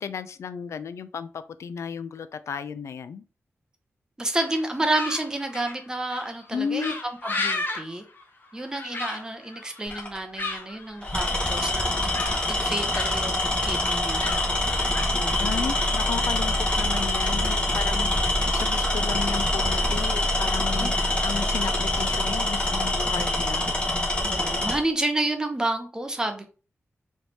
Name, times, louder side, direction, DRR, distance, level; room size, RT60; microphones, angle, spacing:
voice 1, 0.0-3.2 6.5-6.9 15.4-23.7, left 7 dB, 80° left, 12 dB, 0.3 m, -34 dB
voice 2, 4.2-6.9 7.2-8.0 8.5-14.3 15.2-15.7 20.8-20.9 24.2-26.5, right 2 dB, 15° right, 5 dB, 0.6 m, -30 dB
sound 1, 4.3-17.7, left 3 dB, 45° left, 0.8 m, -36 dB
Tools, 9.9-10.2 11.0-24.8, left 1 dB, 20° left, 1.1 m, -25 dB
3.3 x 3.1 x 4.0 m, 0.36 s
wide cardioid pair, 160°, 5 cm